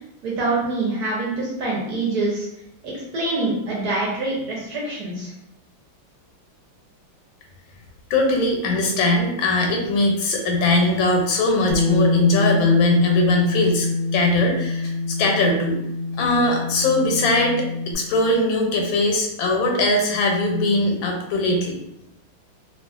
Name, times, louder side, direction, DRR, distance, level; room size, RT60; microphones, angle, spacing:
voice 1, 0.2-2.5 2.8-5.3, right 2 dB, 70° right, -4 dB, 1.0 m, -25 dB
voice 2, 8.1-13.9 14.1-15.8 16.1-21.8, left 2 dB, 85° left, 1 dB, 1.4 m, -20 dB
Bass guitar, 11.7-17.9, left 3 dB, 30° left, 0.5 m, -24 dB
3.0 x 2.3 x 2.3 m, 0.82 s
omnidirectional pair, 2.1 m